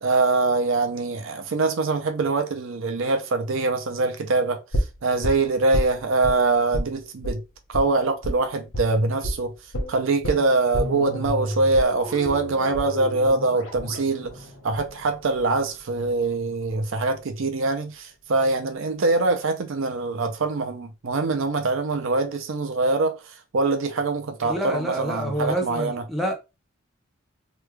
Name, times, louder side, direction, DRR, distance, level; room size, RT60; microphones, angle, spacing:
voice 1, 0.0-7.4 7.7-9.5 9.9-14.3 14.6-26.0, right 3 dB, 65° right, 0.5 m, -24 dB
sound 1, 4.7-6.4 6.7-6.9 7.2-7.4 7.7-7.9 8.2-8.4 8.7-8.9 9.2-9.4 9.7-15.7 16.0-16.1, equal, 75° left, 1.1 m, -30 dB
voice 2, 24.5-26.3, right 1 dB, ahead, 0.6 m, -27 dB
3.1 x 2.3 x 3.3 m
head